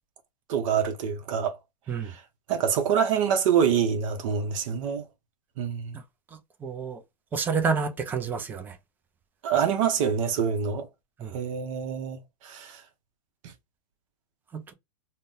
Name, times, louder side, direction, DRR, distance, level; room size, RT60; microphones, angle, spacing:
voice 1, 0.5-1.6 2.0-2.2 2.5-5.0 5.6-6.0 9.4-10.9 11.3-12.8, right 7 dB, 50° right, 0.8 m, -26 dB
voice 2, 6.6-7.0 7.3-8.8 11.2-11.4 14.5-14.7, right 5 dB, 10° right, 0.4 m, -29 dB
2.6 x 2.1 x 3.6 m
hypercardioid pair, 140°, 21 cm